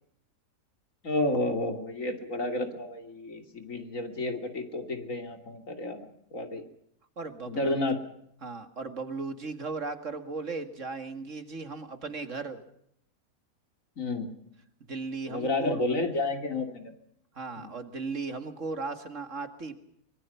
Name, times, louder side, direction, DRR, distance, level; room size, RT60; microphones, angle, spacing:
voice 1, 1.0-6.6 7.5-8.0 14.0-14.3 15.3-16.9 17.6-17.7, left 2 dB, 60° left, 6 dB, 3.2 m, -31 dB
voice 2, 7.2-7.8 8.4-12.6 14.9-15.8 17.3-19.8, right 4 dB, 55° right, 8 dB, 2.3 m, -36 dB
24.5 x 22.5 x 5.7 m, 0.71 s
omnidirectional pair, 1.6 m